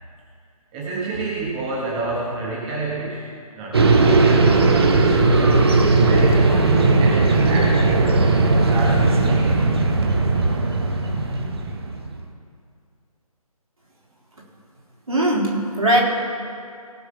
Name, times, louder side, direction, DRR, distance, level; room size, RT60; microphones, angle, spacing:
voice 1, 0.7-3.2 3.5-5.2 5.9-9.6, right 2 dB, 10° right, -5 dB, 1.2 m, -30 dB
sound 1, 3.7-12.1, right 3 dB, 40° right, 1.2 m, -17 dB
voice 2, 15.1-16.0, right 1 dB, 65° right, -4 dB, 3.8 m, -19 dB
18.0 x 6.4 x 5.8 m, 2.3 s
figure-of-eight pair, 150°, 19 cm